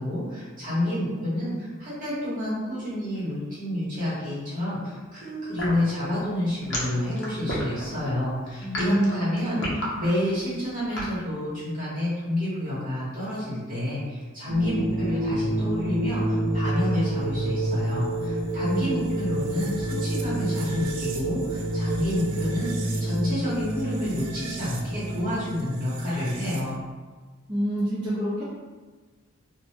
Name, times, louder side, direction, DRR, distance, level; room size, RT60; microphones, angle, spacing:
voice 1, 0.0-9.6 10.0-26.8, left 1 dB, 35° right, -9 dB, 1.0 m, -29 dB
sound 1, 5.6-11.2, left 1 dB, 50° left, 0.6 m, -32 dB
voice 2, 8.6-9.1 9.4-9.7 27.5-28.4, equal, 20° right, -13 dB, 0.6 m, -26 dB
sound 2, 14.5-26.8, right 1 dB, 75° right, 0.3 m, -28 dB
2.2 x 2.1 x 2.8 m, 1.3 s
head